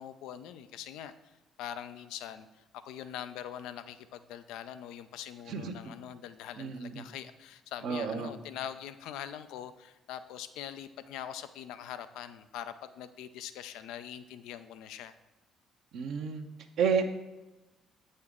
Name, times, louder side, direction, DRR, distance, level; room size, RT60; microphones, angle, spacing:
voice 1, 0.0-1.3 1.6-15.1, left 10 dB, 75° left, 12 dB, 0.4 m, -43 dB
voice 2, 6.6-7.0 7.8-8.4 15.9-16.5 16.8-17.0, right 6 dB, 65° right, 4 dB, 0.7 m, -31 dB
8.3 x 6.4 x 3.6 m, 1.1 s
hypercardioid pair, 50°, 0 cm